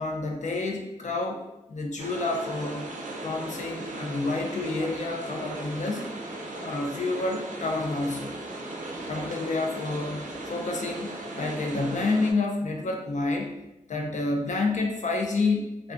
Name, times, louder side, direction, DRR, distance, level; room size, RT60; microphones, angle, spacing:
voice 1, 0.0-1.4 1.7-2.9 3.2-6.0 6.6-8.3 9.1-13.5 13.9-15.9, left 3 dB, 60° left, 2 dB, 0.4 m, -29 dB
sound 1, 2.0-12.3, right 2 dB, 70° right, 0.4 m, -37 dB
2.4 x 2.2 x 2.4 m, 0.94 s
wide cardioid pair, 65°, 14 cm